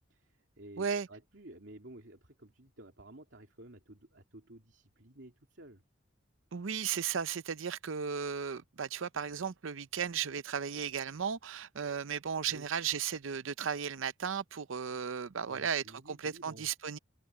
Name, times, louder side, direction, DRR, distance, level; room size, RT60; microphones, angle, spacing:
voice 1, 0.1-5.8 12.5-12.7 15.5-16.7, right 1 dB, 65° right, 3.0 m, -53 dB
voice 2, 0.8-1.1 6.5-17.0, right 7 dB, 80° right, 0.6 m, -35 dB
open air
head